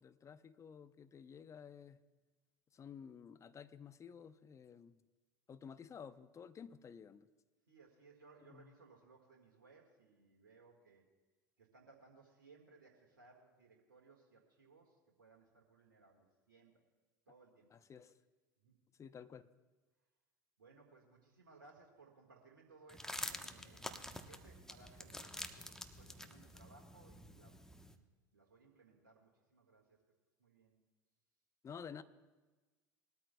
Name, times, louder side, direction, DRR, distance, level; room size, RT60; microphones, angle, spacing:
voice 1, 0.0-2.0 2.7-5.0 5.5-7.3 8.5-8.7 17.7-18.2 19.0-19.5 31.6-32.0, left 7 dB, 30° left, 13 dB, 0.7 m, -53 dB
voice 2, 7.7-11.0 11.6-16.7 17.3-17.7 18.6-18.7 20.6-27.6 27.9-28.0 28.3-30.0 30.4-30.8, right 3 dB, 85° right, 0 dB, 1.7 m, -63 dB
sound 1, 22.9-27.9, left 1 dB, 5° left, 1.0 m, -48 dB
21.0 x 13.0 x 2.3 m, 1.2 s
hypercardioid pair, 75°, 10 cm